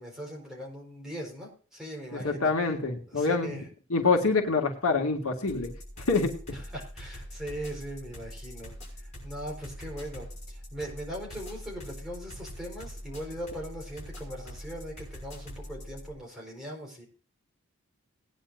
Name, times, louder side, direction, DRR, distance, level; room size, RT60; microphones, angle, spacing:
voice 1, 0.0-2.5 3.1-3.6 6.5-17.0, equal, ahead, -3 dB, 4.3 m, -40 dB
voice 2, 2.1-3.6 3.9-5.7 6.1-6.6, left 4 dB, 80° left, 2 dB, 2.0 m, -26 dB
sound 1, 5.5-16.1, equal, 30° left, 6.3 m, -43 dB
19.0 x 10.0 x 2.6 m, 0.40 s
head